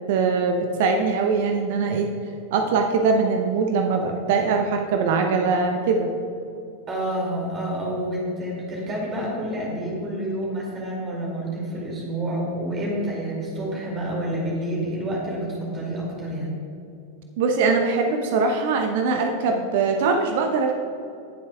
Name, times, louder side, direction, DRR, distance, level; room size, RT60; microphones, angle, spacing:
voice 1, 0.1-2.1 2.5-6.1 17.4-20.7, right 4 dB, 50° right, 4 dB, 0.7 m, -22 dB
voice 2, 6.9-16.6, right 1 dB, 25° right, -3 dB, 2.4 m, -28 dB
18.0 x 7.4 x 2.3 m, 2.7 s
figure-of-eight pair, 90°, 0 cm